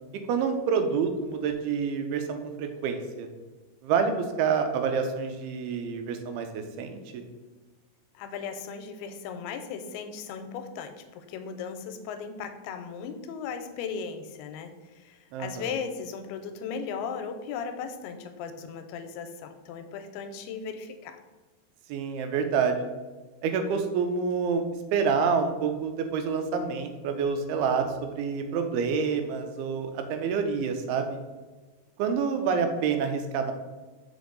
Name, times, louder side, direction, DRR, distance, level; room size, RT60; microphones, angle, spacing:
voice 1, 0.3-3.3 3.8-7.3 15.3-15.7 21.9-22.9 23.4-24.6 24.9-31.2 32.0-33.5, right 6 dB, 85° right, 7 dB, 2.6 m, -28 dB
voice 2, 8.1-21.2, left 6 dB, 90° left, 8 dB, 2.5 m, -37 dB
5.2 x 4.9 x 3.8 m, 1.3 s
omnidirectional pair, 4.5 m